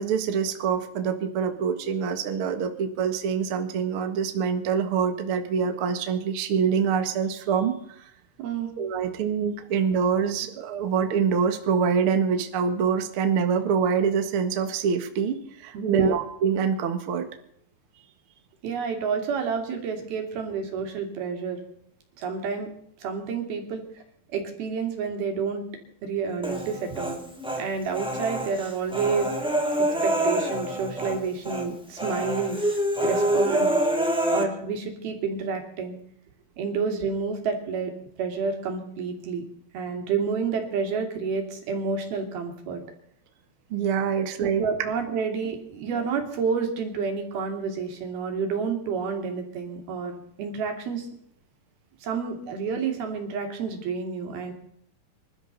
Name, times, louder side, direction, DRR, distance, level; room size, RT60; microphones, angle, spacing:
voice 1, 0.0-8.1 8.8-17.3 43.7-44.6, right 6 dB, 50° right, 7 dB, 1.9 m, -25 dB
voice 2, 8.4-8.7 9.0-9.1 15.7-16.2 18.6-21.6 22.2-22.7 23.0-23.8 24.3-25.7 26.0-27.2 27.6-29.3 29.8-32.6 33.0-33.7 34.3-36.0 36.6-37.9 38.2-39.4 39.7-42.8 44.2-44.3 44.6-50.1 50.4-51.1 52.0-54.5, right 5 dB, 85° right, 3 dB, 4.7 m, -29 dB
Human voice, 26.4-27.6 27.9-31.2 31.4-31.7 32.0-34.4, right 1 dB, ahead, 1.9 m, -26 dB
26.5 x 12.5 x 4.1 m, 0.70 s
omnidirectional pair, 4.2 m